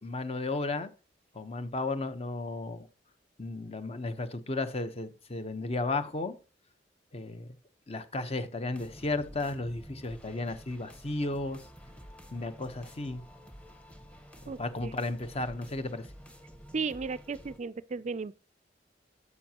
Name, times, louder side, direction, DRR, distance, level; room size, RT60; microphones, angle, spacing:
voice 1, 0.0-0.9 1.3-2.9 3.4-6.3 7.1-7.6 7.9-11.6 12.3-13.2 14.4-16.1, left 2 dB, 35° left, 1.0 m, -34 dB
sound 1, 8.7-17.6, equal, 5° left, 1.2 m, -51 dB
voice 2, 14.5-14.9 16.7-18.3, right 4 dB, 40° right, 0.4 m, -35 dB
12.5 x 8.3 x 2.9 m
head